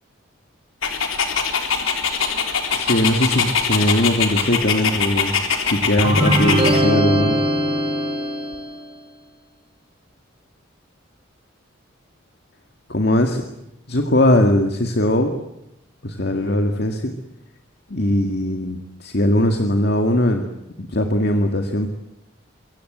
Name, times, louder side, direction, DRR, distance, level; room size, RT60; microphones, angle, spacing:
Dog, 0.8-6.8, left 6 dB, 85° left, 3.9 m, -22 dB
voice 1, 2.7-5.3 5.7-7.4 12.9-13.4 13.9-15.3 16.0-17.1 17.9-20.5 20.8-21.9, left 1 dB, 55° left, 5 dB, 2.0 m, -20 dB
sound 1, 6.0-8.8, equal, 25° right, 4.1 m, -20 dB
24.5 x 24.0 x 8.0 m, 0.86 s
head